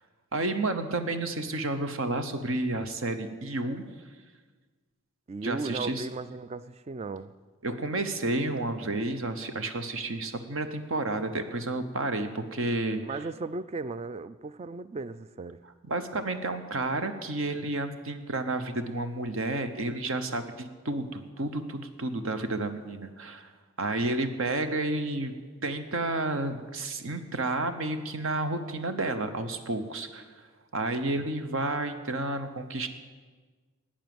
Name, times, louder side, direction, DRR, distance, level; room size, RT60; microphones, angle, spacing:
voice 1, 0.3-3.8 5.4-6.1 7.6-13.0 15.9-23.5 23.8-25.3 25.6-30.3 30.7-32.9, right 2 dB, 60° right, 0.9 m, -31 dB
voice 2, 5.3-7.3 13.0-15.6, right 3 dB, 30° right, 0.3 m, -36 dB
12.0 x 8.7 x 7.7 m
head